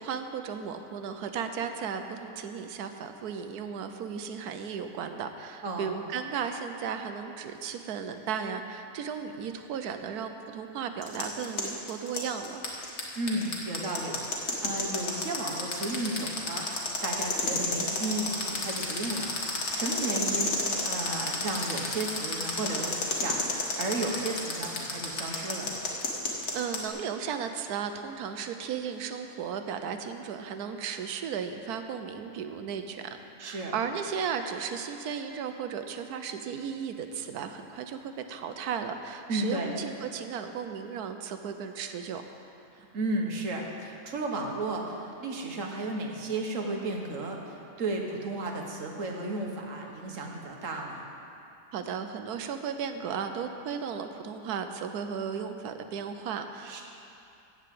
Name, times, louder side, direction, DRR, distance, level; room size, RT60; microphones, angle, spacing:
voice 1, 0.0-12.6 26.5-33.1 33.4-42.2 51.7-56.8, right 7 dB, 80° right, 7 dB, 1.2 m, -35 dB
voice 2, 5.6-6.0 13.1-25.9 33.4-33.7 39.3-39.7 42.7-51.1 56.6-56.8, right 2 dB, 60° right, 1 dB, 1.5 m, -34 dB
sound 1, 11.0-26.8, left 3 dB, 80° left, 2.1 m, -30 dB
14.5 x 4.9 x 8.4 m, 2.7 s
omnidirectional pair, 1.6 m